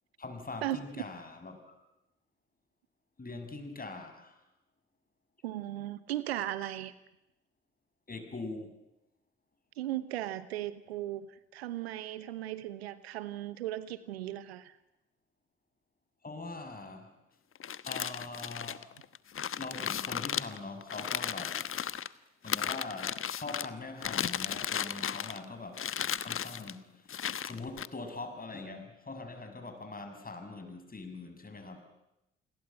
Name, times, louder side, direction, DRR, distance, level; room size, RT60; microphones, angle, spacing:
voice 1, 0.2-1.7 3.2-4.3 8.1-8.7 16.2-17.1 17.8-18.9 19.6-21.6 22.4-25.9 26.2-27.1 27.4-31.8, left 3 dB, 30° left, 6 dB, 7.2 m, -42 dB
voice 2, 5.4-6.9 9.8-14.8, right 13 dB, 85° right, 15 dB, 1.1 m, -37 dB
sound 1, 17.5-22.1 22.5-23.7 24.0-25.4 25.7-26.7 27.1-27.9, left 8 dB, 45° left, 1.2 m, -35 dB
28.5 x 21.5 x 9.1 m, 0.92 s
hypercardioid pair, 45°, 30 cm